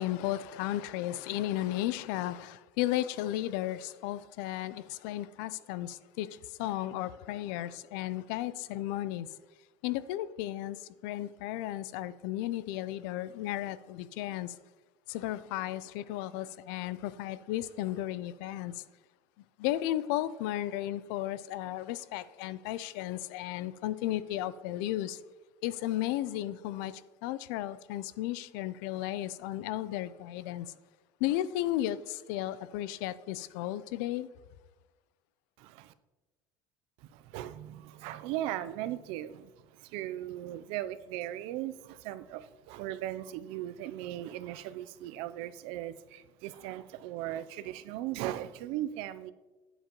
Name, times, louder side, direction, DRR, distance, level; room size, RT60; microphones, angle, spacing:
voice 1, 0.0-9.3 9.8-10.8 11.0-14.5 15.1-18.8 19.6-25.2 25.6-26.9 27.2-30.7 31.2-34.3, left 14 dB, 90° left, 0.4 m, -34 dB
voice 2, 35.6-35.9 37.0-49.3, right 13 dB, 70° right, 0.5 m, -38 dB
9.2 x 7.7 x 3.0 m
cardioid pair, 155°, 10 cm